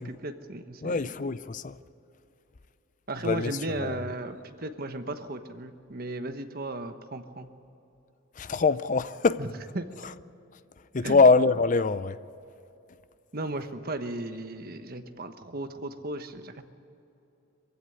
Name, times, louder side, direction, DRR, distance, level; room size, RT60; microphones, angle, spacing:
voice 1, 0.0-1.1 3.1-7.5 9.4-9.5 9.7-9.9 11.0-11.2 13.3-16.7, right 2 dB, 45° right, 1.1 m, -35 dB
voice 2, 0.8-1.8 3.2-3.5 3.8-4.0 8.4-9.4 10.9-12.2, left 4 dB, 35° left, 0.5 m, -23 dB
23.0 x 16.0 x 9.8 m
head